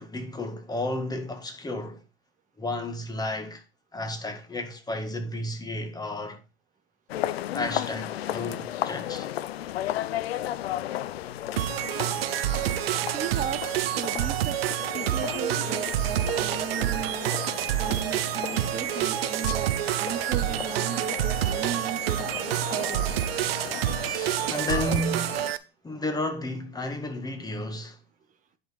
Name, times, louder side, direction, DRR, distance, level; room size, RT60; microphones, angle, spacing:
voice 1, 0.0-2.0 2.6-3.6 3.9-6.4 7.5-9.3 24.0-25.4 25.8-28.0, left 1 dB, 10° left, 1.7 m, -32 dB
sound 1, 7.1-25.5, left 12 dB, 75° left, 0.6 m, -35 dB
sound 2, 11.6-25.6, right 13 dB, 70° right, 0.8 m, -28 dB
voice 2, 13.1-13.6 14.0-17.3 17.8-19.7 20.0-23.1, right 9 dB, 25° right, 0.9 m, -36 dB
10.5 x 5.2 x 4.3 m
hypercardioid pair, 90°, 31 cm